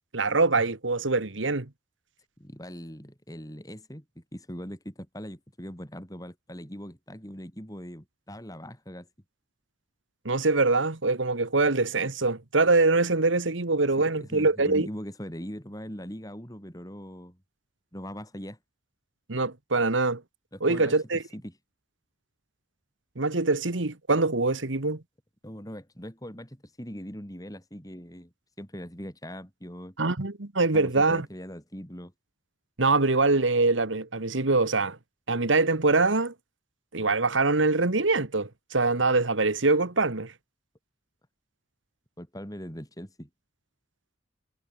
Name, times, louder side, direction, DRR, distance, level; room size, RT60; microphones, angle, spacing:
voice 1, 0.1-1.7 10.2-14.9 19.3-20.2 20.6-21.2 23.2-25.0 30.0-31.2 32.8-35.0 35.3-36.3 36.9-40.3, right 3 dB, 85° right, 1.7 m, -24 dB
voice 2, 2.4-9.1 14.2-17.4 17.9-18.6 20.5-20.9 21.3-21.5 25.4-30.0 30.7-32.1 42.2-43.3, equal, 20° left, 5.9 m, -41 dB
head